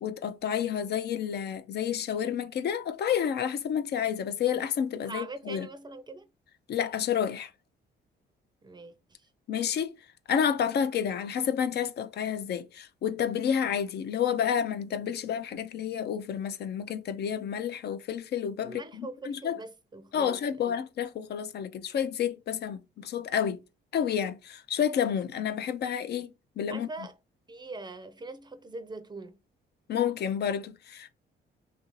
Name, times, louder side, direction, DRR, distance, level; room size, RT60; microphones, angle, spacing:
voice 1, 0.0-5.7 6.7-7.5 9.5-9.9 10.3-19.6 20.1-23.6 23.9-26.3 26.6-26.9 29.9-31.1, left 8 dB, 55° left, 0.4 m, -30 dB
voice 2, 5.0-6.3 8.6-9.3 18.6-20.8 26.7-27.2 27.5-29.4, right 3 dB, 20° right, 0.5 m, -42 dB
2.7 x 2.6 x 2.9 m
cardioid pair, 90°, 20 cm